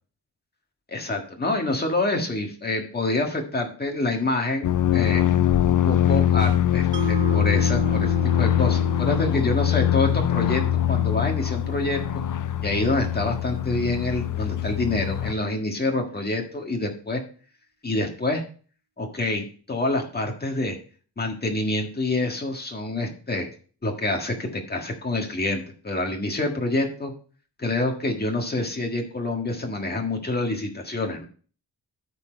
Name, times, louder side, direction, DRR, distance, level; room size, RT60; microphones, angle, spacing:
voice 1, 0.9-5.2 5.7-10.6 10.9-12.0 12.6-17.2 17.8-18.4 19.0-20.8 21.2-23.5 23.8-27.1 27.6-31.2, left 2 dB, 25° left, 2 dB, 1.6 m, -27 dB
sound 1, 4.6-15.3, left 11 dB, 50° left, 0.4 m, -23 dB
Mallet percussion, 6.9-13.1, right 10 dB, 80° right, 0.6 m, -36 dB
13.0 x 4.5 x 4.5 m, 0.41 s
wide cardioid pair, 180°, 41 cm